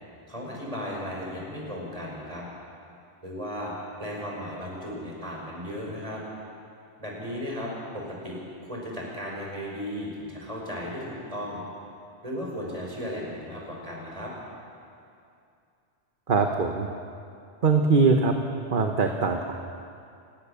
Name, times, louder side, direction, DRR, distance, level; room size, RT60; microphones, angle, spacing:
voice 1, 0.3-2.4 3.2-3.7 4.0-6.2 7.0-11.6 12.2-14.3, equal, 30° right, -3 dB, 6.1 m, -35 dB
voice 2, 16.3-16.9 17.6-18.3 18.7-19.5, right 4 dB, 45° right, 4 dB, 1.3 m, -22 dB
29.5 x 17.0 x 7.0 m, 2.5 s
omnidirectional pair, 1.2 m